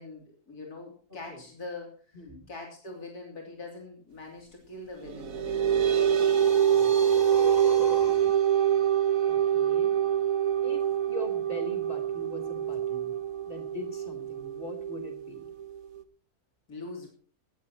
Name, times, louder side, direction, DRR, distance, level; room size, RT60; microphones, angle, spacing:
voice 1, 0.0-2.2 2.5-5.6 16.7-17.1, left 3 dB, 85° left, 1 dB, 3.6 m, -43 dB
voice 2, 1.1-1.4 2.1-2.5 6.5-7.0 7.8-8.0 9.3-10.0 10.6-13.2 13.5-15.5, left 2 dB, 35° left, 6 dB, 3.6 m, -42 dB
sound 1, 5.0-16.0, right 9 dB, 65° right, 1.6 m, -25 dB
sound 2, 5.7-8.3, left 3 dB, 55° left, 1.9 m, -39 dB
18.0 x 13.5 x 3.0 m, 0.41 s
omnidirectional pair, 1.6 m